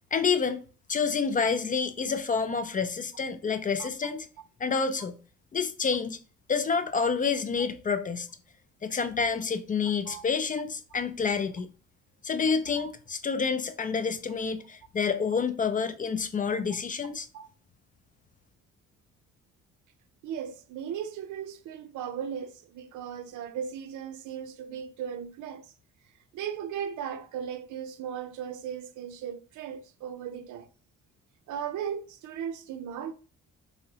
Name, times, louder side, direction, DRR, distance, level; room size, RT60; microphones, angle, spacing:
voice 1, 0.1-0.6 0.9-4.3 4.6-5.2 5.5-6.2 6.5-8.3 8.8-11.7 12.2-17.3, left 5 dB, 30° left, 0.4 m, -28 dB
voice 2, 20.2-25.7 26.3-30.7 31.5-33.1, right 8 dB, 80° right, 0.5 m, -37 dB
4.5 x 2.1 x 2.7 m
cardioid pair, 90°, 30 cm